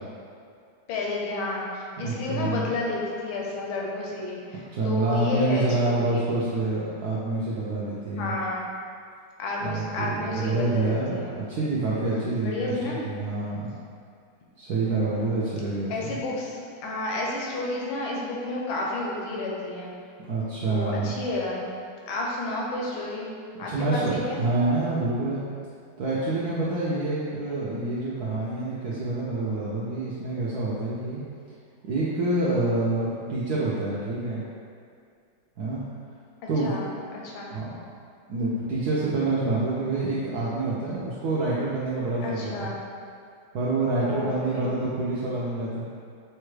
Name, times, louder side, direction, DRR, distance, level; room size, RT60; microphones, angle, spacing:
voice 1, 0.9-6.3 8.2-8.6 9.4-11.3 12.4-13.0 15.9-19.9 20.7-21.6 22.1-23.3 23.6-24.4 27.2-27.4 36.6-36.9 37.1-37.5 42.2-42.8 44.0-44.7, left 2 dB, 85° left, -3 dB, 1.5 m, -31 dB
voice 2, 2.0-2.7 4.5-8.3 9.6-13.7 14.6-16.1 20.2-21.2 23.7-25.4 26.0-31.2 31.8-34.4 35.6-35.8 36.5-36.7 37.5-37.7 38.3-42.7 43.5-45.9, right 2 dB, 80° right, -7 dB, 0.8 m, -27 dB
5.5 x 2.2 x 3.1 m, 2.3 s
omnidirectional pair, 2.2 m